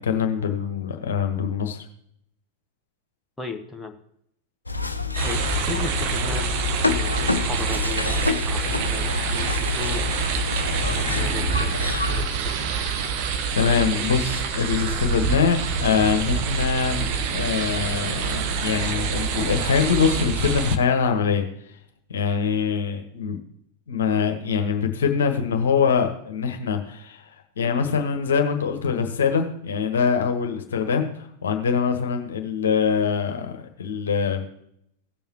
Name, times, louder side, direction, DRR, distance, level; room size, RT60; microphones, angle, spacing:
voice 1, 0.0-1.9 13.5-21.4 22.1-23.4 23.9-27.3 27.6-34.5, left 6 dB, 65° left, 5 dB, 1.3 m, -23 dB
voice 2, 3.4-4.0 5.2-10.1 11.0-12.8, left 4 dB, 5° left, 2 dB, 1.1 m, -36 dB
sound 1, 4.7-12.2, left 4 dB, 85° left, 0.6 m, -27 dB
sound 2, 5.1-20.8, right 6 dB, 45° right, 1.0 m, -26 dB
Animal, 9.2-10.0 10.3-13.3, right 1 dB, 75° right, 4.2 m, -37 dB
17.0 x 7.1 x 3.0 m, 0.71 s
figure-of-eight pair, 90°, 0 cm